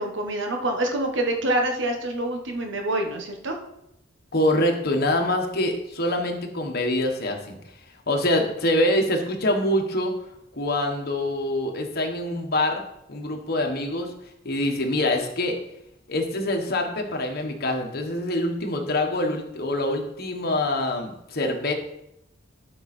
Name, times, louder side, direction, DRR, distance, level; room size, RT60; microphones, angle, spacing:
voice 1, 0.0-3.6, right 1 dB, 70° right, 3 dB, 1.4 m, -26 dB
voice 2, 4.3-7.6 8.1-10.1 10.5-12.8 13.1-14.1 14.4-15.6 16.1-21.7, left 1 dB, 55° left, 3 dB, 1.4 m, -25 dB
11.5 x 5.6 x 4.4 m, 0.82 s
head